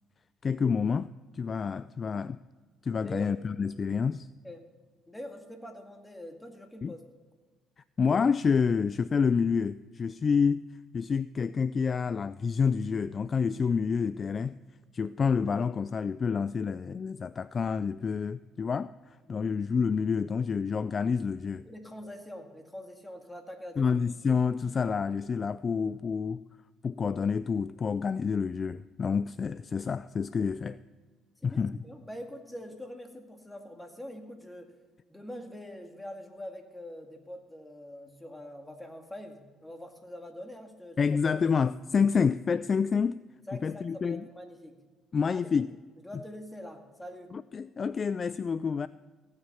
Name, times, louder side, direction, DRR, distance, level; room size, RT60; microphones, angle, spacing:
voice 1, 0.4-2.4 2.8-4.3 6.8-6.9 8.0-10.7 10.9-14.5 14.9-21.6 23.8-26.4 26.8-30.8 31.4-31.7 41.0-43.2 43.5-44.3 45.1-45.7 47.3-48.9, left 6 dB, 40° left, 0.3 m, -28 dB
voice 2, 3.0-3.3 4.4-4.6 5.1-7.0 19.3-19.5 21.7-23.8 31.4-34.7 35.1-41.0 43.5-44.8 45.3-45.4 46.0-47.3, left 1 dB, 10° left, 2.2 m, -44 dB
16.0 x 9.7 x 5.7 m
cardioid pair, 90°, 0 cm